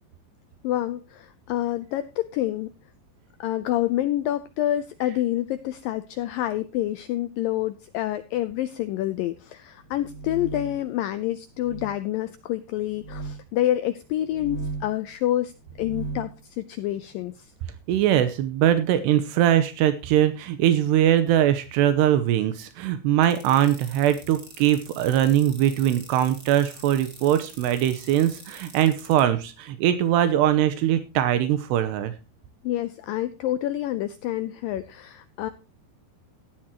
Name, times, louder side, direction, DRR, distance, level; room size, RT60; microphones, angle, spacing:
voice 1, 0.6-2.7 3.4-15.5 15.8-17.5 32.6-35.5, left 13 dB, 90° left, 12 dB, 1.9 m, -27 dB
sound 1, 9.9-10.8 11.6-11.9 12.9-13.4 14.2-15.0 15.6-16.3, right 3 dB, 50° right, 5.3 m, -36 dB
voice 2, 17.9-32.1, right 11 dB, 85° right, 11 dB, 3.0 m, -21 dB
sound 2, 23.2-29.2, right 4 dB, 30° right, 2.6 m, -45 dB
15.0 x 11.5 x 2.9 m, 0.29 s
omnidirectional pair, 4.8 m